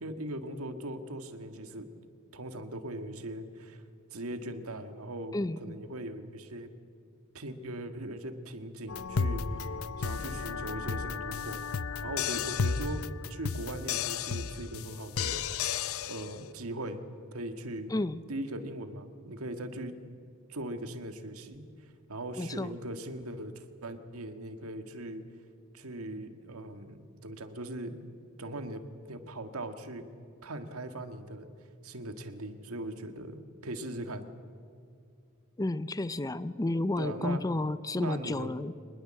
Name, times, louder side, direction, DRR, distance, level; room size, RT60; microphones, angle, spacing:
voice 1, 0.0-1.9 2.3-3.8 4.1-6.7 7.3-11.6 12.0-13.0 13.3-17.0 17.3-17.9 18.3-19.9 20.5-21.6 22.1-25.2 25.7-28.0 28.4-30.0 30.4-31.5 31.8-34.3 37.0-37.4 38.0-38.5, right 1 dB, 90° right, 8 dB, 1.8 m, -40 dB
voice 2, 5.3-5.8 17.9-18.2 22.4-22.7 35.6-38.7, left 2 dB, 15° left, 15 dB, 0.5 m, -31 dB
sound 1, 8.9-16.3, left 6 dB, 75° left, 0.7 m, -33 dB
25.0 x 20.5 x 7.7 m, 2.3 s
head